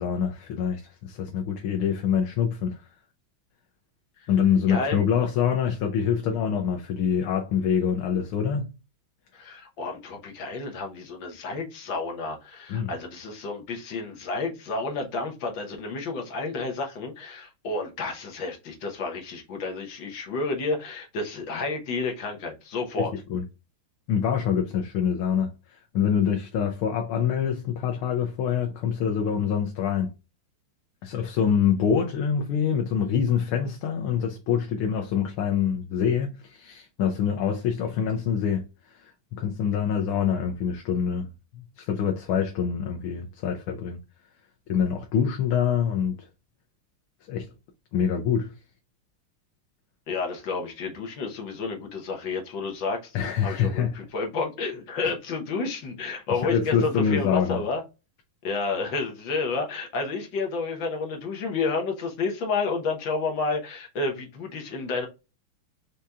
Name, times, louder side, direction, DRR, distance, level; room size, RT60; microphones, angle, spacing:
voice 1, 0.0-2.8 4.3-8.7 12.7-12.9 23.0-23.4 24.1-30.1 31.0-44.0 44.7-46.3 47.3-47.5 47.9-48.5 53.1-54.0 55.0-55.1 56.3-57.6, left 7 dB, 85° left, 1.6 m, -25 dB
voice 2, 4.7-5.0 9.3-23.1 50.1-53.2 53.4-57.8 58.4-65.1, left 3 dB, 65° left, 1.7 m, -30 dB
5.0 x 2.8 x 3.3 m
omnidirectional pair, 2.3 m